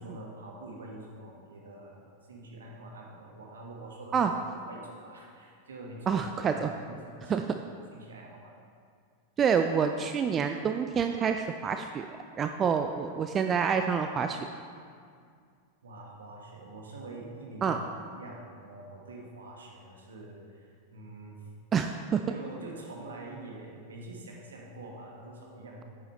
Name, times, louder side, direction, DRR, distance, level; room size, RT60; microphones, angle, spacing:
voice 1, 0.0-2.0 2.3-4.4 4.7-8.5 15.8-17.8 18.1-21.4 22.3-25.8, right 2 dB, 65° right, -1 dB, 1.4 m, -45 dB
voice 2, 6.1-6.7 7.3-7.4 9.4-12.0 12.4-14.4 17.6-17.8 21.7-22.2, right 6 dB, 25° right, 6 dB, 0.3 m, -27 dB
8.8 x 6.6 x 4.2 m, 2.2 s
figure-of-eight pair, 90°, 0 cm